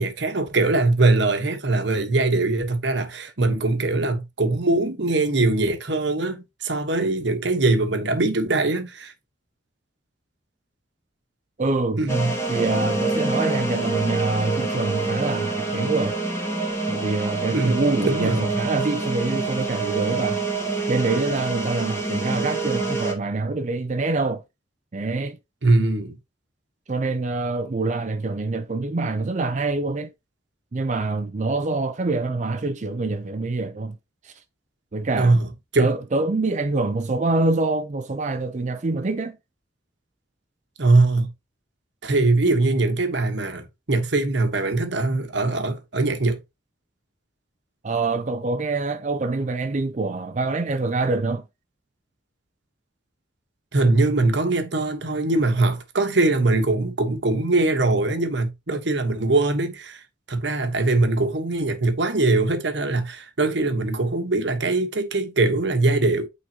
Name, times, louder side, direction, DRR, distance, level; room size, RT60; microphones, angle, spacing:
voice 1, 0.0-9.1 12.0-12.3 17.5-18.4 25.6-26.2 35.1-35.5 35.7-35.9 40.8-41.3 42.0-46.4 53.7-66.3, right 2 dB, 65° right, 1.2 m, -22 dB
voice 2, 11.6-12.0 12.5-16.2 16.9-20.5 20.9-24.4 24.9-25.4 26.9-30.1 30.7-34.0 34.2-34.3 34.9-35.4 35.8-39.4 47.8-51.4, right 3 dB, 40° right, 0.5 m, -25 dB
sound 1, 12.1-23.1, right 3 dB, 15° left, 1.9 m, -26 dB
8.8 x 3.8 x 2.8 m
head